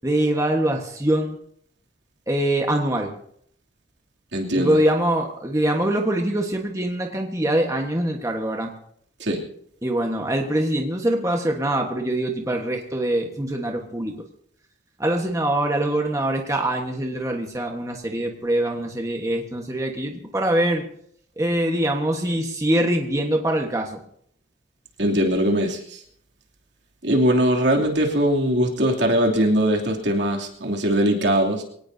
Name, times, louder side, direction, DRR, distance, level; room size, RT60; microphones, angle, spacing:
voice 1, 0.0-1.4 2.3-3.1 4.5-8.7 9.8-14.2 15.0-20.8 21.4-24.0, right 1 dB, 15° right, 2 dB, 1.4 m, -23 dB
voice 2, 4.3-4.8 9.2-9.4 25.0-26.0 27.0-31.6, equal, 70° right, 0 dB, 2.9 m, -21 dB
23.5 x 18.0 x 2.8 m, 0.66 s
head